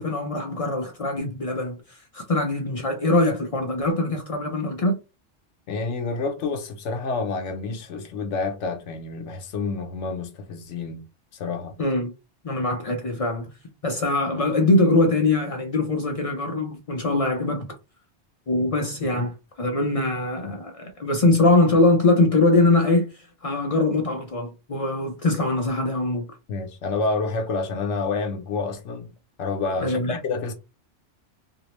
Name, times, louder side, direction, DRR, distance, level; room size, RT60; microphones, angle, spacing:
voice 1, 0.0-5.0 11.8-12.1 12.4-13.5 13.8-17.6 18.5-26.3 29.8-30.2, left 2 dB, 60° left, 0.3 m, -22 dB
voice 2, 5.7-11.0 11.3-11.7 19.1-19.2 26.5-29.1 29.4-30.5, left 4 dB, 85° left, 1.0 m, -28 dB
2.7 x 2.0 x 2.9 m
omnidirectional pair, 1.2 m